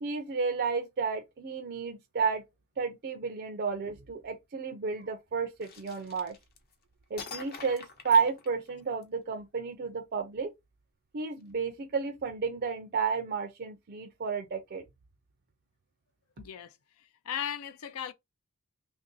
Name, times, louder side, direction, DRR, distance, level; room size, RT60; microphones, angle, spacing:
voice 1, 0.0-2.4 2.8-6.4 7.1-10.5 11.1-14.8, right 5 dB, 45° right, 0.5 m, -31 dB
sound 1, 5.6-6.7 7.2-9.0, left 5 dB, 45° left, 0.8 m, -45 dB
voice 2, 16.4-18.1, left 9 dB, 70° left, 0.4 m, -38 dB
3.0 x 2.6 x 3.8 m
head